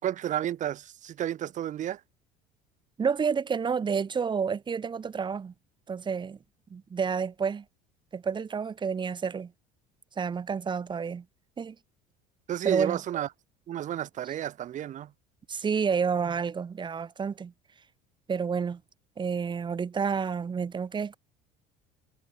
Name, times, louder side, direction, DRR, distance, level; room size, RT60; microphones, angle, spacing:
voice 1, 0.0-2.0 12.5-13.3 13.7-15.1, right 11 dB, 50° right, 4.2 m, -31 dB
voice 2, 3.0-5.5 5.9-6.4 6.7-7.6 8.1-9.5 10.2-11.2 11.6-11.8 12.6-13.0 15.5-17.5 18.3-18.8 19.2-21.2, right 6 dB, 30° right, 2.7 m, -29 dB
supercardioid pair, 100°, 16 cm